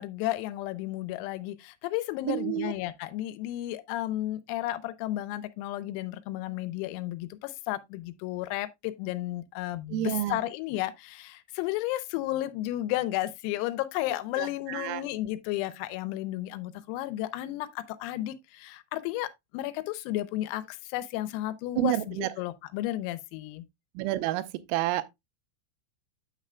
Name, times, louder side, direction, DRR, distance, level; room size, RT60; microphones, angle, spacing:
voice 1, 0.0-23.6, left 15 dB, 90° left, 3.4 m, -33 dB
voice 2, 2.3-2.7 9.9-10.4 14.4-15.0 21.8-22.3 24.0-24.4 24.7-25.0, right 15 dB, 90° right, 3.3 m, -29 dB
9.1 x 7.4 x 2.2 m
omnidirectional pair, 6.0 m